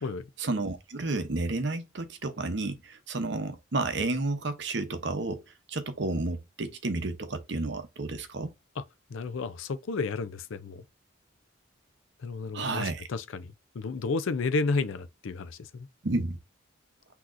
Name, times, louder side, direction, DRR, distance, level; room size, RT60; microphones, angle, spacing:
voice 1, 0.4-5.4 5.7-8.5 12.5-13.1 16.0-16.4, right 2 dB, 60° right, 0.7 m, -31 dB
voice 2, 9.1-10.8 12.2-15.9, left 4 dB, 80° left, 0.5 m, -32 dB
6.1 x 2.9 x 2.5 m
head